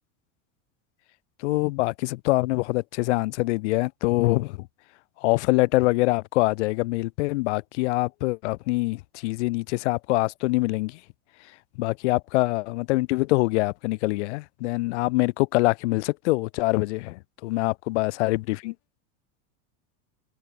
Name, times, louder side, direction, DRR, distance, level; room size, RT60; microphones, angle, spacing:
voice 1, 1.4-4.7 5.2-11.0 11.8-18.7, left 22 dB, 60° left, 2.7 m, -24 dB
supercardioid pair, 180°, 39 cm